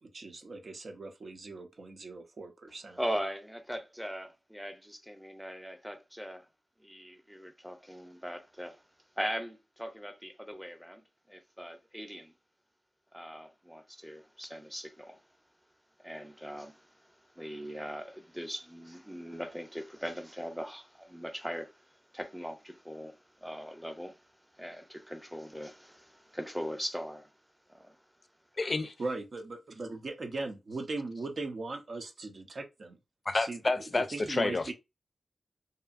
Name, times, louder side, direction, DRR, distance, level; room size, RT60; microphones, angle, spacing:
voice 1, 0.0-3.0 29.0-33.0 33.3-33.6 34.1-34.7, right 3 dB, 65° right, 0.6 m, -39 dB
voice 2, 3.0-6.5 6.8-8.8 9.2-12.3 13.1-15.2 16.0-24.2 24.5-27.3 27.7-28.0, equal, ahead, 0.6 m, -40 dB
voice 3, 28.6-28.9 33.3-34.7, left 3 dB, 45° left, 0.4 m, -29 dB
2.7 x 2.4 x 2.4 m
wide cardioid pair, 70°, 0 cm